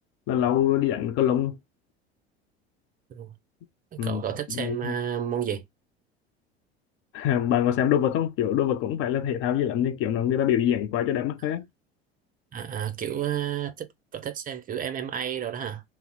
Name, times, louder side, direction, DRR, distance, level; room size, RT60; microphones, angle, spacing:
voice 1, 0.3-1.6 4.0-4.2 4.5-4.9 7.1-11.6, left 10 dB, 40° left, 0.4 m, -24 dB
voice 2, 3.9-5.6 12.5-15.8, right 9 dB, 25° right, 0.6 m, -31 dB
2.7 x 2.0 x 3.9 m
figure-of-eight pair, 70°, 31 cm